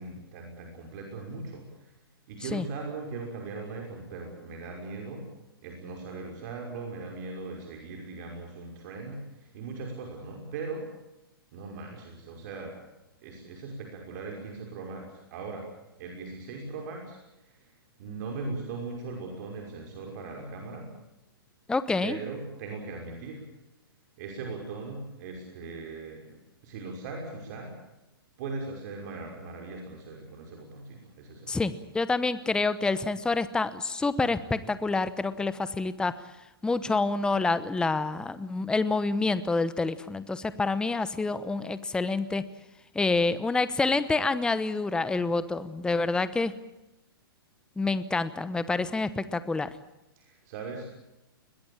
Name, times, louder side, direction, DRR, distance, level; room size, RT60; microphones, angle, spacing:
voice 1, 0.0-1.9 2.3-5.2 5.6-10.9 11.5-12.8 13.2-15.7 16.0-20.9 22.0-23.4 24.2-27.8 28.4-31.7 50.2-50.9, right 3 dB, 50° right, 2 dB, 5.8 m, -39 dB
voice 2, 21.7-22.2 31.5-36.1 36.6-42.4 42.9-46.5 47.8-49.7, left 3 dB, 5° left, 14 dB, 1.0 m, -27 dB
22.0 x 21.0 x 8.8 m, 0.93 s
hypercardioid pair, 125°, 12 cm